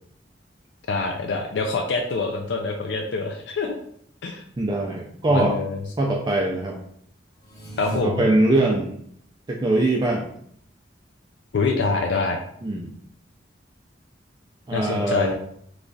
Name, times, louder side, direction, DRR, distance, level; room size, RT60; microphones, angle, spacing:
voice 1, 0.9-3.8 4.2-4.4 5.3-5.8 7.8-8.3 11.5-12.4 14.7-15.3, left 3 dB, 75° left, 3 dB, 0.4 m, -25 dB
voice 2, 4.6-5.6 6.0-6.8 8.0-8.9 9.5-10.3 12.6-12.9 14.7-15.3, right 2 dB, 25° right, -1 dB, 0.4 m, -22 dB
sound 1, 7.4-8.0, right 2 dB, 20° left, 1.1 m, -36 dB
3.1 x 2.3 x 3.8 m, 0.66 s
head